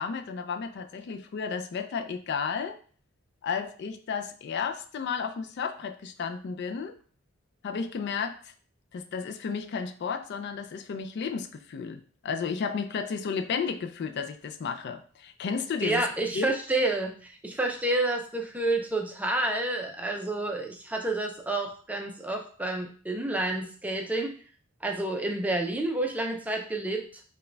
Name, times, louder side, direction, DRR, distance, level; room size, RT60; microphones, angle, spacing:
voice 1, 0.0-2.8 3.4-7.0 7.6-8.5 8.9-16.6, left 6 dB, 55° left, 7 dB, 0.3 m, -33 dB
voice 2, 15.8-24.3 24.8-27.2, right 2 dB, 5° right, 2 dB, 0.4 m, -29 dB
4.7 x 2.2 x 3.3 m, 0.44 s
head